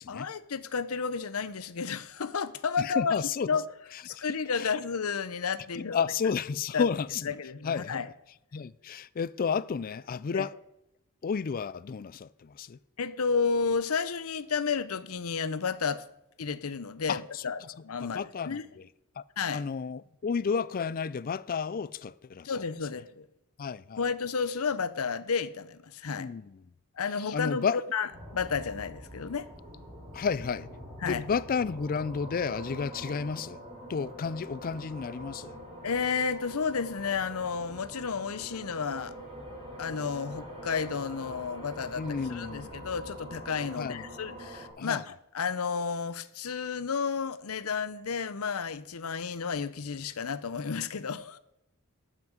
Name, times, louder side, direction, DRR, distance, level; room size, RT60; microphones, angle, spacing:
voice 1, 0.0-3.2 3.5-3.6 4.0-6.0 6.7-6.9 7.3-8.1 10.3-10.5 13.0-16.0 16.4-18.7 19.4-19.6 22.4-23.3 24.0-26.3 27.0-28.1 28.3-29.5 31.0-31.2 35.8-39.2 39.8-51.4, left 5 dB, 80° left, 0.7 m, -32 dB
voice 2, 2.8-3.5 3.9-4.2 4.6-4.7 5.7-7.3 7.6-8.0 8.5-10.5 11.2-12.8 17.1-17.4 18.0-18.9 19.2-19.3 19.5-22.6 23.6-24.0 26.2-26.6 27.3-27.8 30.1-30.7 31.0-33.6 33.9-35.5 42.0-42.7 43.8-44.1 44.8-45.0, left 6 dB, 40° left, 0.4 m, -32 dB
horror-drama atmosfare, 28.1-44.7, equal, 20° right, 5.6 m, -44 dB
12.0 x 5.9 x 7.8 m
head